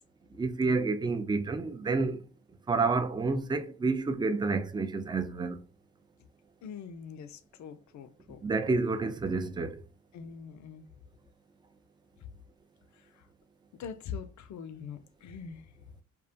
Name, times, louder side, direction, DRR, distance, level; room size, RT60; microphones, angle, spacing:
voice 1, 0.3-2.2 2.7-5.6 8.4-9.8, right 3 dB, 15° right, 0.3 m, -29 dB
voice 2, 6.6-8.4 10.1-10.9 13.8-15.6, left 6 dB, 50° left, 0.5 m, -43 dB
2.3 x 2.1 x 2.6 m
hypercardioid pair, 45°, 37 cm